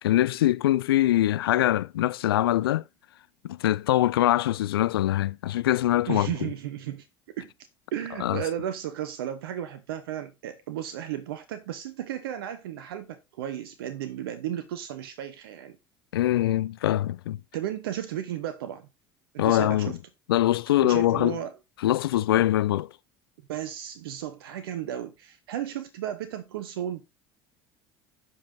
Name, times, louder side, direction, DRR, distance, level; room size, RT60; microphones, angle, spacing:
voice 1, 0.0-2.8 3.4-6.5 8.2-8.4 16.1-17.4 19.4-19.9 20.3-21.4 21.8-22.9, left 14 dB, 80° left, 0.4 m, -23 dB
voice 2, 6.1-7.1 7.4-7.5 7.9-15.8 17.5-18.9 19.3-20.0 20.8-21.5 23.5-27.1, right 11 dB, 75° right, 0.9 m, -34 dB
15.5 x 5.6 x 2.7 m
hypercardioid pair, 70°, 12 cm